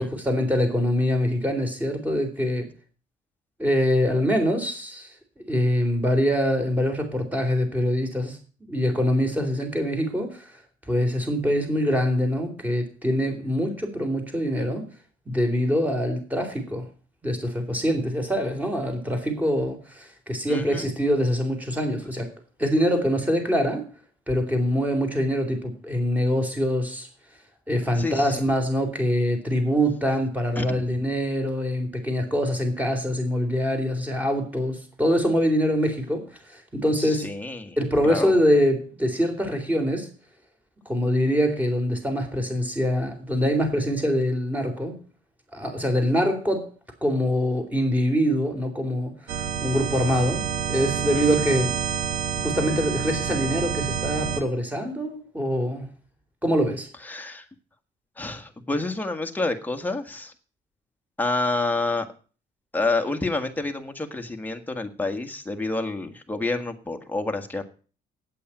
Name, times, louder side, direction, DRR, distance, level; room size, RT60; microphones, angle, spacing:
voice 1, 0.0-2.7 3.6-5.1 5.5-8.4 8.7-10.5 10.9-14.8 15.3-16.9 17.2-22.3 22.6-23.8 24.3-27.1 27.7-36.2 36.5-37.3 37.8-40.1 40.9-45.0 45.5-46.7 47.0-50.4 50.7-51.7 52.4-55.9 56.4-56.9, equal, 10° right, 4 dB, 3.9 m, -24 dB
voice 2, 20.5-20.9 28.0-28.4 30.5-30.8 37.0-37.8 38.0-38.4 51.1-51.5 57.0-57.4 58.2-60.3 61.2-62.1 62.7-67.6, left 2 dB, 10° left, 5 dB, 1.6 m, -28 dB
sound 1, 49.3-54.4, right 8 dB, 90° right, 1.5 m, -28 dB
8.8 x 8.4 x 9.0 m, 0.39 s
cardioid pair, 110°, 17 cm